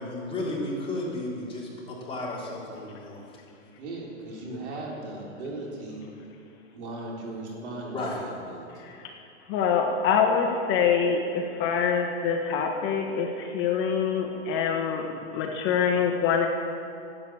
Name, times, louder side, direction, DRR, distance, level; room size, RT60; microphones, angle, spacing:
voice 1, 0.0-3.4 7.8-8.2, left 2 dB, 15° left, -6 dB, 3.9 m, -33 dB
voice 2, 3.8-6.0 6.7-9.0, right 2 dB, 70° right, -2 dB, 4.0 m, -38 dB
voice 3, 8.8-9.1 9.5-16.5, left 6 dB, 35° left, 3 dB, 1.3 m, -25 dB
12.5 x 8.6 x 8.7 m, 2.6 s
hypercardioid pair, 130°, 35 cm